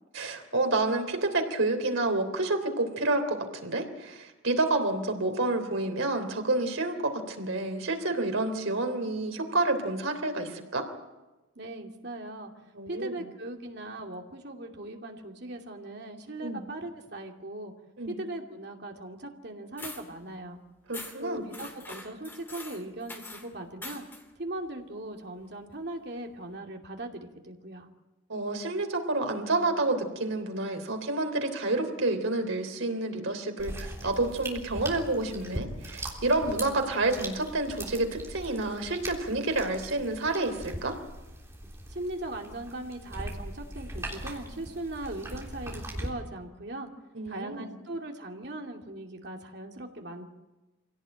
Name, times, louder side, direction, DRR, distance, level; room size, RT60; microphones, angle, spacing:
voice 1, 0.1-10.8 12.7-13.1 16.4-16.6 18.0-18.2 20.9-21.4 28.3-40.9 47.1-47.7, right 2 dB, 85° right, 5 dB, 3.4 m, -29 dB
voice 2, 11.6-12.5 12.9-17.7 18.0-20.6 21.2-24.0 24.4-27.9 41.9-46.9 47.3-50.2, right 1 dB, 55° right, 2 dB, 2.6 m, -39 dB
sound 1, 19.8-20.1 20.9-21.2 21.5-23.5 23.8-24.2, left 2 dB, 10° left, 2.3 m, -43 dB
sound 2, 33.6-46.1, right 1 dB, 15° right, 3.4 m, -40 dB
25.0 x 17.0 x 8.9 m, 1.1 s
head